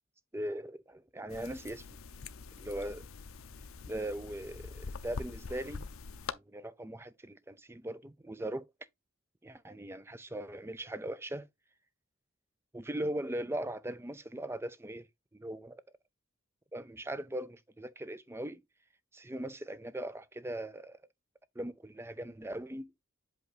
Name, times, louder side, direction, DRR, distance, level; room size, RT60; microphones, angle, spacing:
voice 1, 0.3-1.8 2.6-3.0 3.9-5.8 6.3-8.6 9.4-11.5 12.7-15.1 15.3-15.8 16.7-18.6 19.1-21.0 21.6-22.9, right 1 dB, 10° right, 0.5 m, -39 dB
sound 1, 1.3-6.3, left 4 dB, 85° left, 0.6 m, -44 dB
7.9 x 2.6 x 4.8 m
head